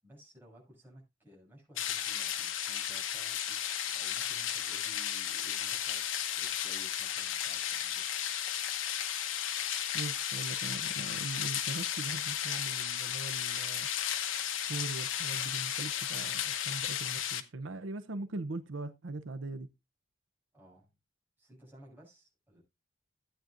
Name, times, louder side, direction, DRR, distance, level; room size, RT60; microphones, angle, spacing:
voice 1, 0.0-3.6 3.8-8.0 20.5-20.9 21.4-22.6, equal, 10° right, 6.6 m, -57 dB
sound 1, 1.8-17.4, left 10 dB, 90° left, 1.1 m, -34 dB
voice 2, 9.9-13.9 14.7-19.7, right 2 dB, 80° right, 0.7 m, -41 dB
15.0 x 9.1 x 2.5 m
head